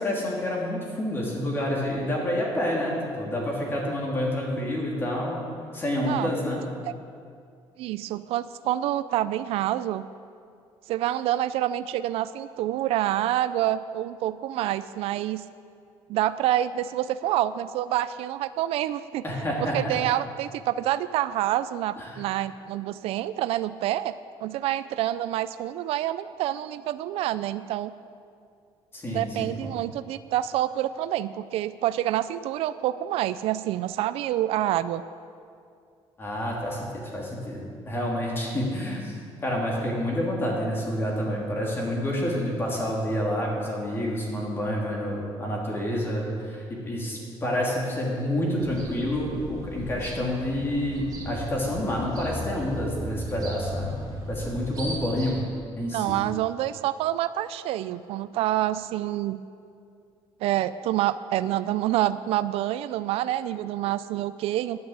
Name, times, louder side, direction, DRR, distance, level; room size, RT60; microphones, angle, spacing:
voice 1, 0.0-5.4 5.7-6.6 19.2-20.0 22.0-22.2 28.9-29.7 36.2-39.2 39.4-53.9 54.3-55.4 55.8-56.2, left 1 dB, 25° left, -3 dB, 3.0 m, -28 dB
voice 2, 7.8-10.1 10.9-15.4 16.1-19.2 19.7-24.1 24.4-27.9 29.1-35.0 55.9-59.4 60.4-64.8, right 13 dB, 80° right, 14 dB, 0.4 m, -27 dB
sound 1, 48.6-55.4, equal, 35° right, 2.3 m, -36 dB
11.0 x 9.5 x 8.0 m, 2.3 s
cardioid pair, 150°, 10 cm